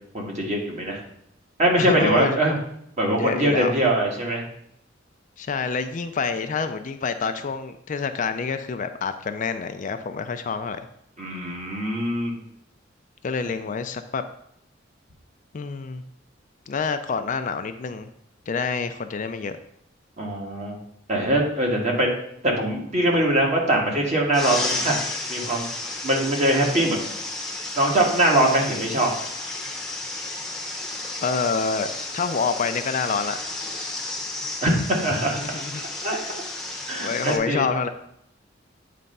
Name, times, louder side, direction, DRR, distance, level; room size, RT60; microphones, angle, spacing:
voice 1, 0.1-1.0 1.6-2.5 3.0-4.4 11.2-12.4 20.2-20.8 21.1-22.2 22.4-24.9 25.3-25.6 26.0-27.0 27.8-29.1 34.6-35.4 35.7-36.4 36.8-37.7, right 1 dB, 40° right, -1 dB, 1.5 m, -22 dB
voice 2, 1.8-2.6 3.1-3.7 5.4-10.9 13.2-14.2 15.5-16.0 16.7-18.1 18.5-19.6 31.2-33.4 35.1-36.3 37.0-37.9, left 5 dB, 40° left, 8 dB, 0.4 m, -27 dB
sound 1, 24.3-37.4, left 2 dB, ahead, 0.9 m, -32 dB
8.4 x 3.4 x 5.4 m, 0.73 s
head